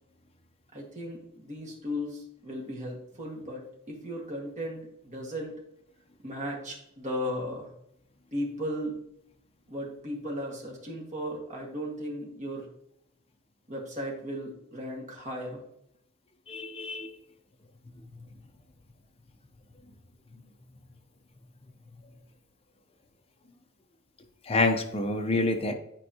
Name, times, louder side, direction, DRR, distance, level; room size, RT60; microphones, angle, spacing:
voice 1, 0.7-5.6 6.2-7.7 8.3-9.0 9.7-12.7 13.7-15.6, equal, 35° right, -1 dB, 1.8 m, -36 dB
voice 2, 16.5-17.1 24.5-25.7, left 2 dB, 25° left, 5 dB, 0.7 m, -27 dB
9.0 x 4.6 x 2.9 m, 0.76 s
head